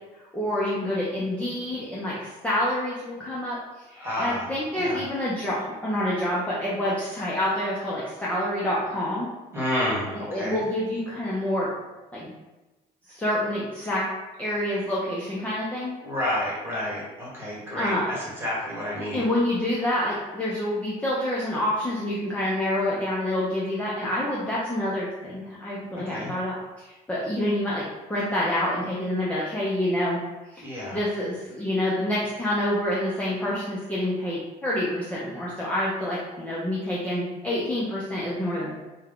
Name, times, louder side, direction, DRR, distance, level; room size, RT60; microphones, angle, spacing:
voice 1, 0.3-3.6 3.9-9.3 10.3-11.7 12.1-12.3 13.1-14.1 14.4-16.0 17.8-18.1 19.1-30.2 30.5-30.6 30.9-38.7, left 1 dB, 10° left, -7 dB, 0.6 m, -27 dB
voice 2, 4.0-4.5 4.7-5.0 9.5-10.6 16.0-19.2 25.9-26.3 30.6-31.0, left 1 dB, 15° right, -6 dB, 1.5 m, -30 dB
3.4 x 2.3 x 3.6 m, 1.1 s
cardioid pair, 110°, 17 cm